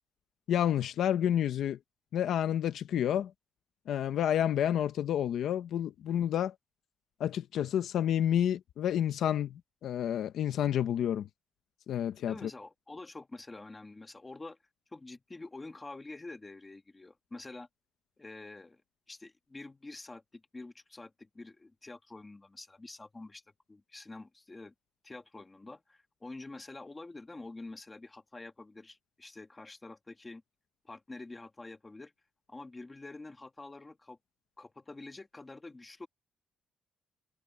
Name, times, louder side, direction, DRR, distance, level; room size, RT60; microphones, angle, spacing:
voice 1, 0.5-1.8 2.1-3.3 3.9-6.5 7.2-11.3 11.9-12.5, left 10 dB, 65° left, 0.9 m, -29 dB
voice 2, 12.3-14.6 14.9-17.7 18.2-18.8 19.1-23.4 23.7-24.7 25.0-30.4 30.8-32.1 32.5-34.2 34.6-36.1, left 2 dB, 15° left, 1.7 m, -47 dB
cardioid pair, 180°, 0 cm